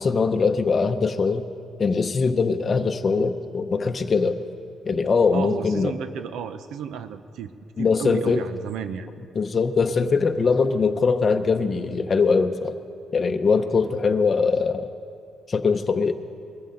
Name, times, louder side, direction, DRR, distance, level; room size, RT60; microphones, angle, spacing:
voice 1, 0.0-1.5 1.8-4.4 4.9-5.9 7.8-8.4 9.3-12.7 13.1-14.9 15.5-16.1, left 4 dB, 40° left, 6 dB, 0.7 m, -22 dB
voice 2, 5.3-7.5 7.8-9.1, right 7 dB, 80° right, 10 dB, 0.7 m, -33 dB
21.5 x 14.5 x 3.9 m, 2.4 s
cardioid pair, 90°, 0 cm